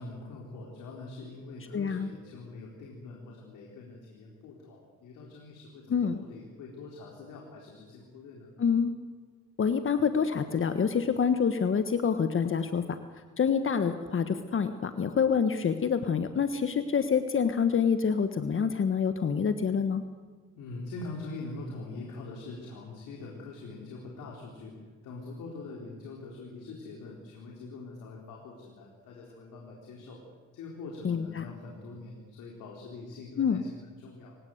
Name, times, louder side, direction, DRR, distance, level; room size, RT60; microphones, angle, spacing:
voice 1, 0.0-8.5 20.6-24.7 25.0-30.2 30.5-34.4, left 3 dB, 85° left, -1 dB, 4.3 m, -44 dB
voice 2, 1.7-2.1 5.9-6.2 8.6-8.9 9.6-12.8 13.4-20.0 31.0-31.5 33.4-33.6, left 6 dB, 45° left, 9 dB, 1.3 m, -27 dB
27.5 x 17.5 x 8.0 m, 1.5 s
cardioid pair, 90°, 30 cm